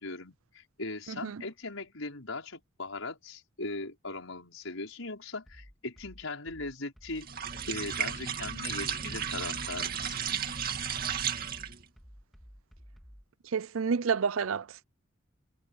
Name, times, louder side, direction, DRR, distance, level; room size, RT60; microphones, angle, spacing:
voice 1, 0.0-7.3 7.7-10.2, left 3 dB, 85° left, 5.4 m, -39 dB
voice 2, 1.1-1.4 13.4-14.8, right 6 dB, 85° right, 0.5 m, -30 dB
sound 1, 5.5-13.3, equal, ahead, 3.6 m, -53 dB
sound 2, 7.2-11.8, right 7 dB, 45° right, 2.2 m, -34 dB
head